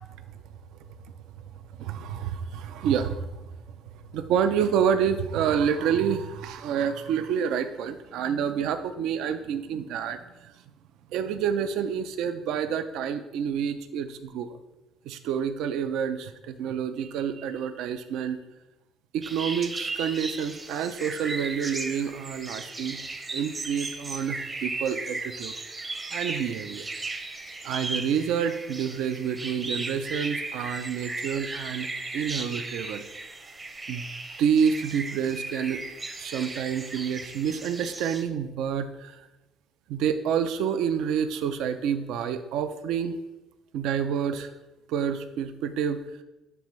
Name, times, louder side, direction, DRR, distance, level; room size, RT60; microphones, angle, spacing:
voice 1, 1.8-3.4 4.1-10.5 11.1-14.6 15.1-18.4 19.1-23.0 23.3-26.9 27.6-33.0 33.9-34.0 34.4-35.8 36.2-39.2 39.9-43.2 43.7-44.5 44.9-46.0, right 7 dB, 75° right, 10 dB, 0.4 m, -28 dB
sound 1, 19.2-38.2, right 3 dB, 25° right, 0.7 m, -36 dB
10.5 x 3.5 x 3.1 m, 1.0 s
cardioid pair, 115°, 0 cm